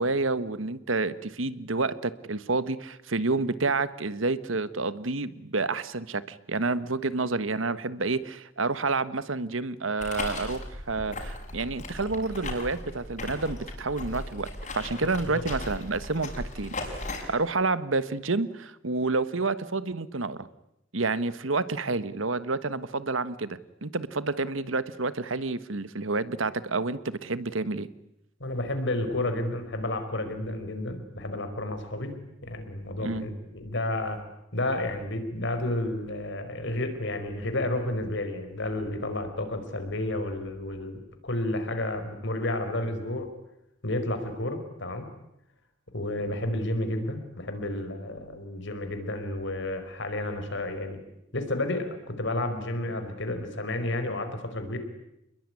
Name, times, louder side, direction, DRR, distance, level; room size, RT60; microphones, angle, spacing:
voice 1, 0.0-16.7 17.3-20.5 20.9-27.9 33.0-33.2, right 3 dB, 80° right, 15 dB, 1.4 m, -29 dB
sound 1, 10.0-17.2, left 2 dB, 40° left, 6.5 m, -37 dB
voice 2, 15.0-15.5 28.4-32.1 32.4-34.2 34.5-43.3 43.8-45.1 45.9-51.0 51.3-54.8, left 1 dB, 65° left, 8 dB, 4.8 m, -31 dB
28.5 x 21.5 x 9.8 m, 0.87 s
head